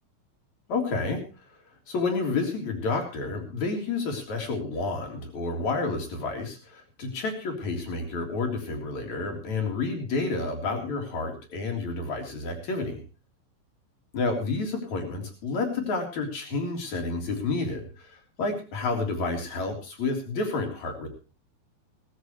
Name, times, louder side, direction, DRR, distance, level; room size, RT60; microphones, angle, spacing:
voice 1, 0.7-1.2 1.9-13.0 14.1-21.1, left 3 dB, 40° left, 2 dB, 4.3 m, -30 dB
18.0 x 14.5 x 3.1 m, 0.34 s
omnidirectional pair, 5.6 m